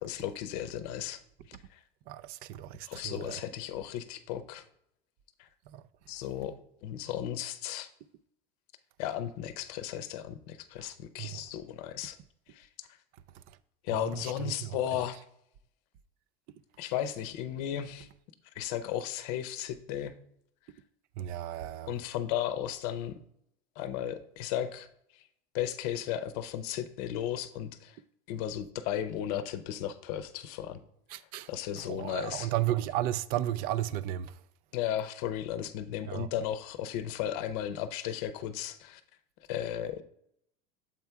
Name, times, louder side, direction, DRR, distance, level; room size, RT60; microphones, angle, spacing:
voice 1, 0.0-1.2 1.5-1.8 2.8-4.6 5.4-5.5 6.1-7.9 9.0-12.2 12.5-12.9 13.8-15.2 16.8-18.1 18.5-20.1 21.8-23.2 23.8-24.9 25.1-25.2 25.5-28.0 28.3-30.8 31.5-32.5 34.7-39.0 39.5-40.0, left 10 dB, 70° left, 0.7 m, -35 dB
voice 2, 2.1-3.4 5.7-5.8 10.8-10.9 11.2-11.4 14.2-14.5 21.2-21.9 31.1-31.5 31.8-34.3 36.1-36.3, right 13 dB, 45° right, 0.4 m, -34 dB
7.3 x 4.5 x 3.5 m
supercardioid pair, 140°, 20 cm